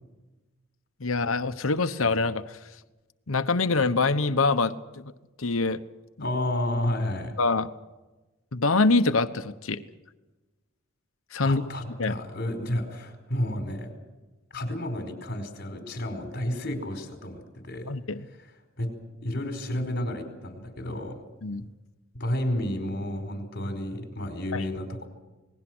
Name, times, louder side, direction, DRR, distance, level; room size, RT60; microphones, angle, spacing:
voice 1, 1.0-2.6 3.3-5.1 5.4-5.8 7.4-7.7 8.5-9.8 11.3-11.6 12.0-12.1 17.9-18.2 21.4-21.6 24.5-24.6, left 3 dB, 85° left, 10 dB, 1.1 m, -25 dB
voice 2, 6.2-7.4 11.4-13.9 14.5-18.0 18.8-18.9 19.2-21.2 22.1-25.1, left 1 dB, 50° left, 4 dB, 4.6 m, -31 dB
28.0 x 20.0 x 6.3 m, 1.1 s
head